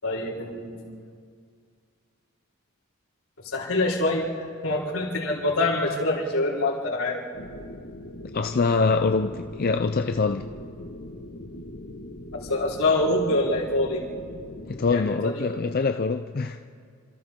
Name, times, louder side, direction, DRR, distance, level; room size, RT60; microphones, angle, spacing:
voice 1, 0.0-0.9 3.4-4.2 4.6-7.2 12.3-14.0 14.9-15.4, left 2 dB, 80° left, 4.2 m, -25 dB
sound 1, 7.3-15.0, left 1 dB, 65° left, 1.5 m, -41 dB
voice 2, 8.3-10.5 14.7-16.6, left 4 dB, 45° left, 0.5 m, -24 dB
27.5 x 27.0 x 3.7 m
head